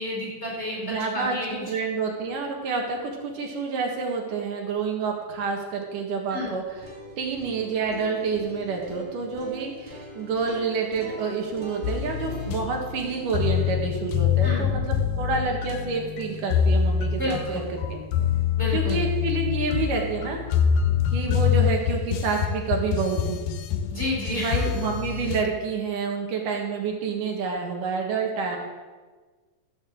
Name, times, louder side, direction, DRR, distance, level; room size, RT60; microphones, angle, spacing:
voice 1, 0.0-1.6 6.3-6.5 14.4-14.7 17.2-17.6 18.5-19.0 23.9-24.8 28.5-28.6, left 1 dB, 20° left, -5 dB, 3.8 m, -31 dB
voice 2, 0.8-6.8 7.2-18.0 18.7-20.4 21.1-23.4 24.3-28.6, right 5 dB, 80° right, 1 dB, 3.2 m, -28 dB
sound 1, 6.6-16.6, left 1 dB, 20° right, 2.5 m, -44 dB
sound 2, 11.8-25.4, left 8 dB, 85° left, 2.2 m, -25 dB
14.0 x 6.7 x 7.4 m, 1.4 s
omnidirectional pair, 3.7 m